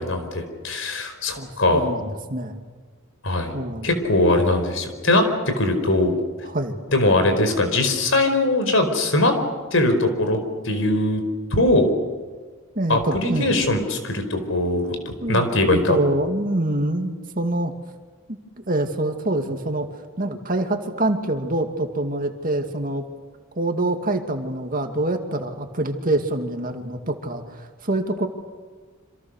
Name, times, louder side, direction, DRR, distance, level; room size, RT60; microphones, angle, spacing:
voice 1, 0.0-1.9 3.2-3.5 3.8-6.2 6.9-9.3 9.7-10.4 10.6-11.2 11.5-11.9 12.9-14.9 15.3-16.0, left 2 dB, 65° left, 7 dB, 4.8 m, -21 dB
voice 2, 1.4-2.6 3.5-3.9 6.5-6.8 12.8-13.5 15.2-17.7 18.3-18.4 18.6-19.9 20.2-23.0 23.6-28.3, right 1 dB, 40° right, 5 dB, 2.4 m, -25 dB
28.0 x 27.0 x 6.5 m, 1.5 s
head